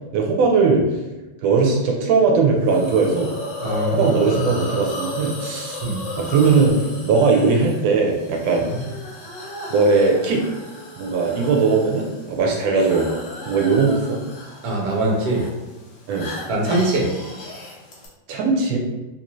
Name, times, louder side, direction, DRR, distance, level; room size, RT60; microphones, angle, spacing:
voice 1, 0.1-0.8 1.4-3.3 3.9-5.8 6.2-8.7 9.7-10.4 11.0-13.1 13.5-14.2 16.1-16.3 18.3-18.8, right 4 dB, 85° right, 0 dB, 1.3 m, -19 dB
Hiss, 2.7-18.1, left 1 dB, 80° left, 1.5 m, -34 dB
voice 2, 3.6-4.4 5.8-6.0 8.6-8.8 14.6-15.4 16.5-17.1, right 1 dB, 60° right, -2 dB, 1.2 m, -22 dB
3.7 x 2.6 x 3.0 m, 1.1 s
omnidirectional pair, 2.1 m